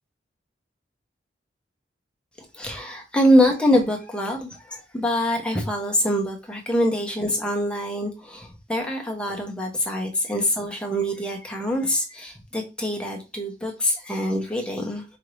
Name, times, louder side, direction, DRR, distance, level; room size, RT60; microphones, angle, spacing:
voice 1, 2.4-15.0, equal, 5° left, 0.8 m, -24 dB
4.9 x 2.7 x 3.1 m
head